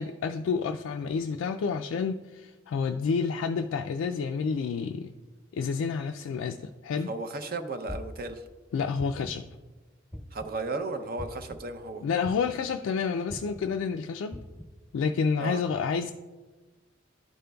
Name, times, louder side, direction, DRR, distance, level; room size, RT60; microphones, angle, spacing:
voice 1, 0.0-5.1 5.5-7.1 8.7-9.5 12.0-14.4 14.9-16.1, left 5 dB, 90° left, 0.3 m, -29 dB
voice 2, 7.1-8.4 10.3-12.0 15.4-15.6, right 2 dB, 50° right, 0.6 m, -34 dB
sound 1, 7.9-8.3 9.0-9.5 10.1-10.6 11.2-11.5 12.2-12.6 13.3-13.6 14.3-14.7, equal, 10° right, 1.1 m, -40 dB
12.0 x 5.1 x 2.3 m
head